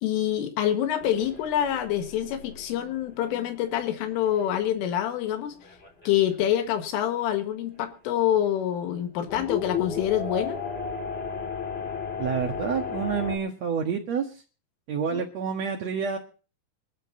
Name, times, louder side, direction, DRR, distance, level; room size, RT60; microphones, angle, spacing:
voice 1, 0.0-5.6 6.1-10.6 15.1-15.3, left 11 dB, 85° left, 7 dB, 4.1 m, -26 dB
sound 1, 1.0-4.7 5.1-5.2 5.6-7.2 7.8-7.9 9.3-13.4, left 6 dB, 35° left, 0.9 m, -35 dB
voice 2, 12.2-14.3 14.9-16.2, right 7 dB, 80° right, 2 dB, 1.5 m, -28 dB
24.0 x 13.0 x 2.7 m, 0.36 s
omnidirectional pair, 5.6 m